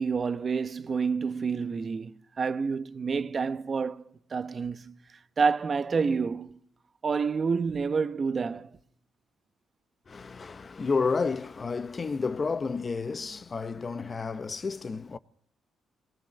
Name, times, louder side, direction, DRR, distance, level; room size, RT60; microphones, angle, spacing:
voice 1, 0.0-4.9 5.4-6.6 7.0-8.7, right 5 dB, 40° right, 1.0 m, -28 dB
voice 2, 10.1-15.2, left 4 dB, 35° left, 0.8 m, -31 dB
23.5 x 19.5 x 6.7 m
cardioid pair, 90°, 0 cm